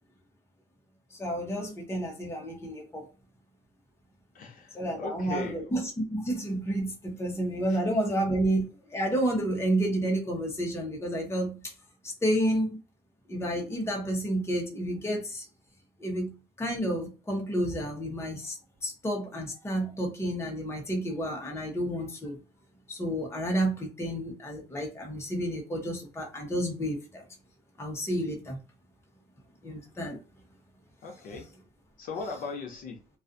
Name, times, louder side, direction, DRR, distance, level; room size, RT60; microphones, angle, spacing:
voice 1, 1.1-3.1 4.7-11.7 12.2-12.8 13.3-15.4 16.0-18.6 18.8-22.4 22.9-27.2 27.8-28.6 29.6-30.2 31.3-31.4, right 1 dB, 15° left, 0.8 m, -30 dB
voice 2, 4.3-5.7 7.7-7.8 31.0-31.5 32.0-33.0, left 4 dB, 55° left, 0.6 m, -38 dB
2.4 x 2.4 x 2.5 m
cardioid pair, 110°, 17 cm